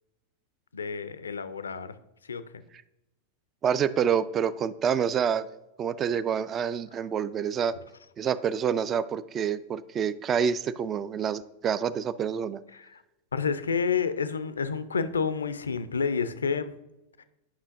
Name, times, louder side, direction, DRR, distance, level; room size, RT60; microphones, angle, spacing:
voice 1, 0.7-2.0 2.2-2.6 12.7-13.0 13.3-16.8 17.2-17.3, left 5 dB, 75° left, 13 dB, 0.4 m, -29 dB
voice 2, 3.6-5.5 5.8-7.7 8.2-12.6, right 7 dB, 25° right, 17 dB, 0.3 m, -27 dB
10.0 x 5.5 x 2.6 m, 0.93 s
figure-of-eight pair, 90°, 0 cm